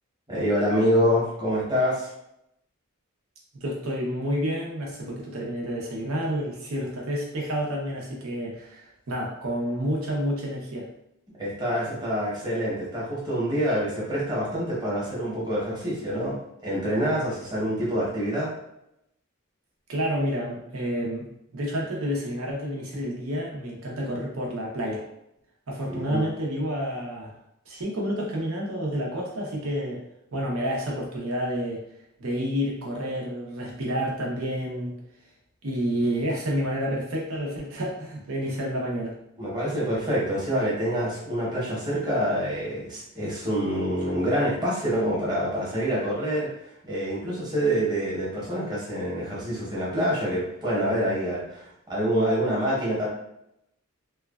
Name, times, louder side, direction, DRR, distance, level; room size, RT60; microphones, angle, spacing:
voice 1, 0.3-2.1 11.4-18.5 25.9-26.2 39.4-46.5 46.9-53.1, equal, 20° right, -7 dB, 1.0 m, -26 dB
voice 2, 3.6-10.9 19.9-21.3 21.5-25.0 25.7-27.4 27.7-30.0 30.3-31.8 32.2-34.9 35.6-39.1, equal, 75° right, -2 dB, 0.8 m, -29 dB
3.1 x 2.2 x 2.3 m, 0.79 s
head